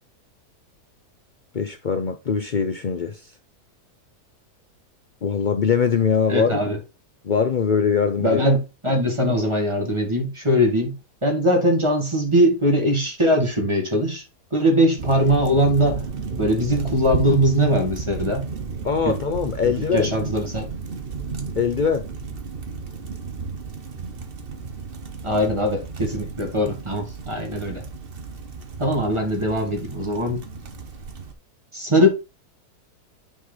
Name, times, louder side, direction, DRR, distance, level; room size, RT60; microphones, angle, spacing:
voice 1, 1.5-3.2 5.2-6.6 7.2-8.4 18.8-20.1 21.6-22.1, left 6 dB, 70° left, 0.4 m, -22 dB
voice 2, 6.3-6.8 8.2-11.0 11.2-14.2 14.5-16.0 16.4-18.5 19.0-19.2 19.6-20.7 25.2-27.8 28.8-30.4 31.7-32.1, equal, 15° right, 2.1 m, -21 dB
sound 1, 15.0-31.3, right 5 dB, 40° right, 1.1 m, -33 dB
9.1 x 4.8 x 4.0 m
omnidirectional pair, 1.8 m